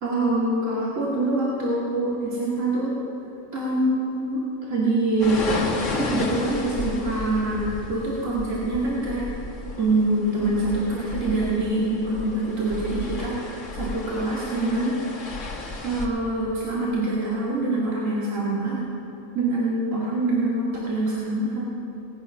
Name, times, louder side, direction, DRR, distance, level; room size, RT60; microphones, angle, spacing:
voice 1, 0.0-2.9 3.5-9.3 9.8-15.0 15.8-18.8 19.3-21.6, right 2 dB, 65° right, -7 dB, 2.4 m, -25 dB
sound 1, 5.2-16.1, left 2 dB, 65° left, 1.8 m, -33 dB
19.0 x 9.3 x 5.8 m, 2.9 s
omnidirectional pair, 1.4 m